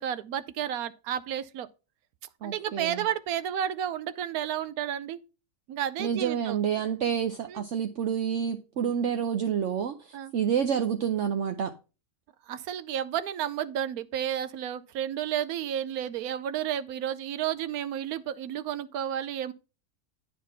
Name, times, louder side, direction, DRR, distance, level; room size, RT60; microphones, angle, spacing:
voice 1, 0.0-1.7 2.4-5.2 5.7-6.6 7.5-7.6 10.1-10.3 12.5-19.5, right 10 dB, 80° right, 1.1 m, -32 dB
voice 2, 2.4-3.0 6.0-11.7, right 8 dB, 65° right, 0.9 m, -28 dB
9.3 x 4.2 x 5.6 m
omnidirectional pair, 1.5 m